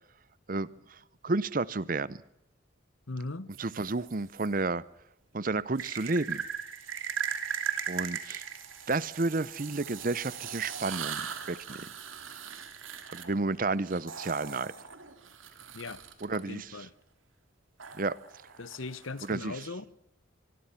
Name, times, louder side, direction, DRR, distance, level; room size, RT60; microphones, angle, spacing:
voice 1, 0.5-2.2 3.6-4.8 5.3-6.4 7.9-8.4 8.9-11.9 13.1-14.7 16.2-16.7 17.9-18.2 19.3-19.6, right 3 dB, 45° right, 0.7 m, -31 dB
voice 2, 3.1-3.5 15.7-16.0 16.3-16.9 18.6-19.8, left 3 dB, 85° left, 1.2 m, -39 dB
sound 1, 3.5-4.5 5.8-16.4 17.8-19.6, right 7 dB, 85° right, 2.9 m, -39 dB
25.5 x 21.5 x 5.8 m
head